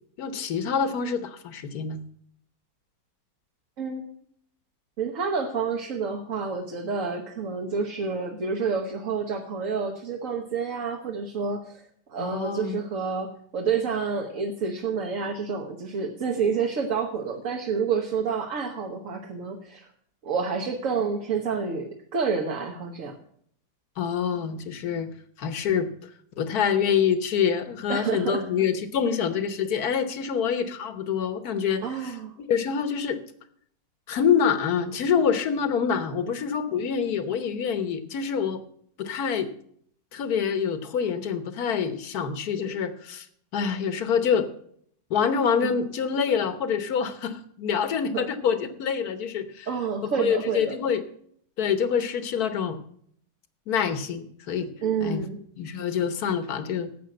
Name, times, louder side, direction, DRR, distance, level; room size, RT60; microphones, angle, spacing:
voice 1, 0.2-2.0 12.2-12.8 24.0-25.1 25.4-26.1 26.4-33.2 34.1-38.6 39.0-39.5 40.1-43.3 43.5-44.5 45.1-49.7 50.0-51.0 51.6-52.8 53.7-54.7 55.0-55.2 55.6-56.9, left 7 dB, 60° left, 10 dB, 1.5 m, -26 dB
voice 2, 5.0-11.8 12.1-19.9 20.2-23.1 27.9-28.4 31.8-32.3 45.6-45.7 48.1-48.2 49.7-50.8 54.8-55.4, right 5 dB, 50° right, 2 dB, 1.4 m, -29 dB
12.0 x 7.8 x 7.7 m, 0.65 s
omnidirectional pair, 2.0 m